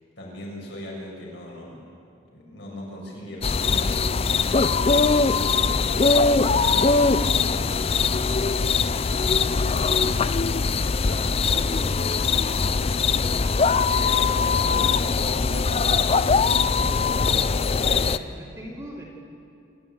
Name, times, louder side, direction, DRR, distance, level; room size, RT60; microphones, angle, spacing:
voice 1, 0.2-1.9 2.3-8.5 8.8-10.2 10.6-13.1 14.0-16.9, equal, 55° left, -3 dB, 6.6 m, -39 dB
sound 1, 3.4-18.2, left 4 dB, 30° left, 0.4 m, -21 dB
voice 2, 14.0-14.6 17.8-19.0, equal, 15° right, -3 dB, 2.8 m, -40 dB
27.0 x 12.5 x 9.2 m, 2.6 s
head